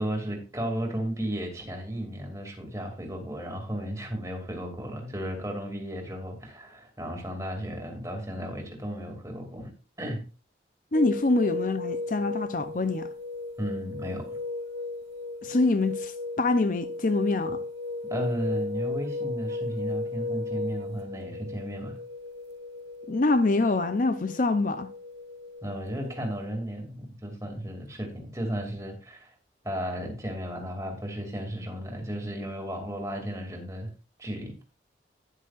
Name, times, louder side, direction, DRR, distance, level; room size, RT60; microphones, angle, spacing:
voice 1, 0.0-9.7 10.0-10.2 13.6-14.2 18.1-22.0 25.6-29.3 29.6-33.9 34.2-34.5, equal, 15° right, 2.4 m, -34 dB
voice 2, 10.9-13.1 15.4-17.6 23.1-24.9, left 2 dB, 45° left, 0.5 m, -25 dB
sound 1, 10.9-26.5, left 3 dB, 70° right, 1.1 m, -35 dB
11.5 x 10.0 x 2.5 m
head